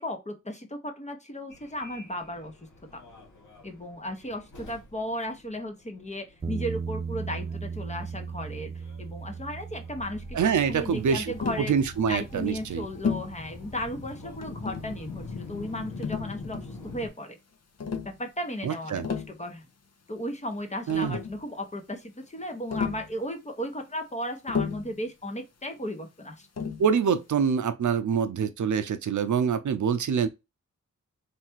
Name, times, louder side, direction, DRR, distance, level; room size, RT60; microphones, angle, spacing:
voice 1, 0.0-2.5 2.9-3.0 3.6-10.4 10.7-11.7 12.1-17.4 18.0-19.7 20.1-26.5, equal, 25° left, 0.9 m, -35 dB
Subway metro underground, 1.5-17.1, left 3 dB, 85° left, 1.2 m, -45 dB
sound 1, 6.4-15.3, right 5 dB, 20° right, 0.4 m, -39 dB
voice 2, 10.3-12.9 18.6-19.1 20.9-21.2 26.8-30.3, right 7 dB, 75° right, 0.6 m, -25 dB
Tap, 11.4-11.7 13.0-13.4 14.4-15.0 16.0-16.8 17.8-18.1 18.8-19.4 20.5-20.6 20.9-21.4 22.7-23.1 24.5-24.9 26.6-26.9, left 6 dB, 55° left, 0.8 m, -32 dB
3.4 x 2.4 x 4.4 m
wide cardioid pair, 110°, 30 cm